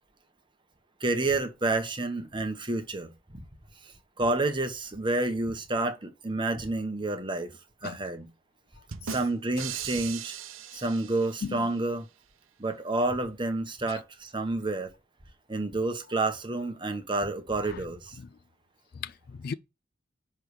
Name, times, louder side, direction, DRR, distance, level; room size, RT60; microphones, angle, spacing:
voice 1, 1.0-3.4 4.2-7.5 7.8-8.3 9.0-10.3 10.7-12.0 12.6-14.9 15.5-18.2, right 2 dB, 25° right, 1.2 m, -29 dB
sound 1, 8.9-11.7, right 8 dB, 85° right, 0.7 m, -39 dB
voice 2, 11.4-11.8 13.9-14.0 17.6-17.8 18.2-18.3 18.9-19.5, left 6 dB, 50° left, 0.3 m, -38 dB
10.0 x 3.4 x 6.5 m
head